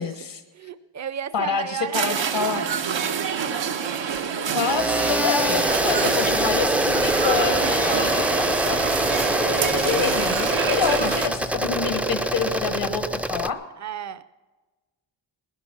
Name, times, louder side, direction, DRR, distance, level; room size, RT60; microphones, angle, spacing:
voice 1, 0.0-0.4 1.3-2.6 4.4-13.6, left 6 dB, 75° left, 7 dB, 1.3 m, -27 dB
voice 2, 0.5-3.7 13.8-14.2, right 9 dB, 40° right, 14 dB, 0.6 m, -34 dB
sound 1, 1.9-11.3, right 7 dB, 85° right, 1.1 m, -27 dB
sound 2, 4.7-13.5, right 1 dB, 5° right, 0.4 m, -24 dB
19.5 x 11.0 x 6.1 m, 1.2 s
wide cardioid pair, 100°, 44 cm